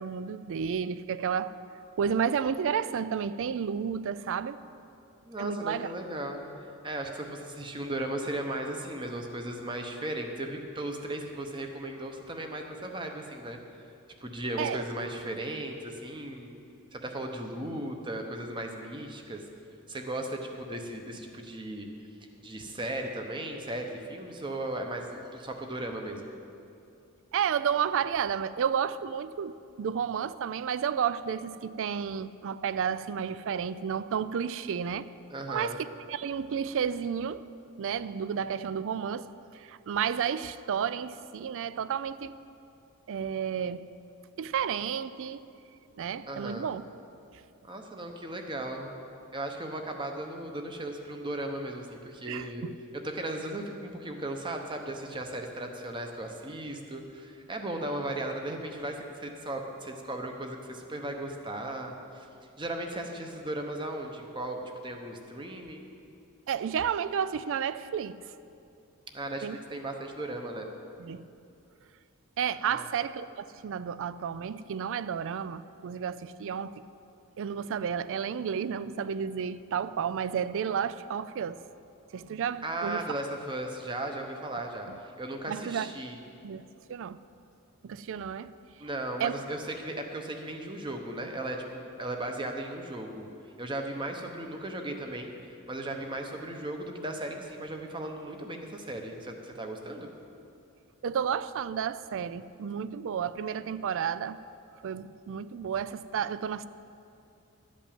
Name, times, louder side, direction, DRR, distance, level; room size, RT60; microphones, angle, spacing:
voice 1, 0.0-1.5 2.0-4.6 5.4-5.9 14.6-14.8 27.3-35.1 35.5-37.5 37.8-42.4 43.1-43.9 44.4-45.5 46.0-46.8 52.3-52.7 66.5-68.2 69.4-69.6 71.0-71.3 72.4-76.8 77.4-81.6 82.1-83.1 84.9-85.0 85.5-85.9 86.4-86.6 86.9-87.2 87.8-88.5 89.2-89.3 101.0-104.4 104.8-106.7, right 7 dB, 60° right, 15 dB, 0.4 m, -31 dB
voice 2, 5.3-6.5 6.8-13.6 14.2-16.5 16.9-19.4 19.9-21.9 22.4-26.3 35.3-35.8 46.3-46.7 47.6-48.9 49.3-52.6 52.9-62.3 62.6-65.9 69.1-70.7 72.7-72.8 82.6-86.2 88.8-93.3 93.6-100.1, right 1 dB, 20° right, 3 dB, 0.9 m, -36 dB
12.5 x 5.3 x 8.8 m, 2.6 s
head